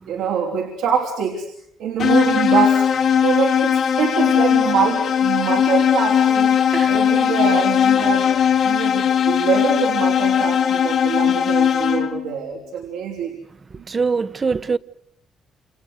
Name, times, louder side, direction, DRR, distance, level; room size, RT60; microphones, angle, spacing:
voice 1, 0.1-1.5 1.8-2.9 3.2-8.4 8.6-13.3 13.8-13.9, right 7 dB, 90° right, 4.8 m, -24 dB
sound 1, 2.0-12.3, left 8 dB, 65° left, 2.9 m, -18 dB
voice 2, 13.7-14.8, right 4 dB, 35° right, 1.2 m, -23 dB
29.5 x 29.0 x 6.6 m
cardioid pair, 90°, 0 cm